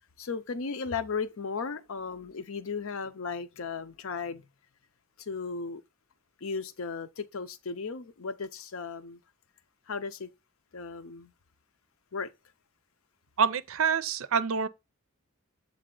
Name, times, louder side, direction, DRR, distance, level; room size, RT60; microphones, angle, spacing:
voice 1, 0.2-4.5 5.2-5.8 6.4-9.2 9.9-10.3 10.7-11.3 12.1-12.3, left 5 dB, 65° left, 0.6 m, -35 dB
voice 2, 13.4-14.7, right 6 dB, 65° right, 0.5 m, -26 dB
7.7 x 3.3 x 3.8 m
head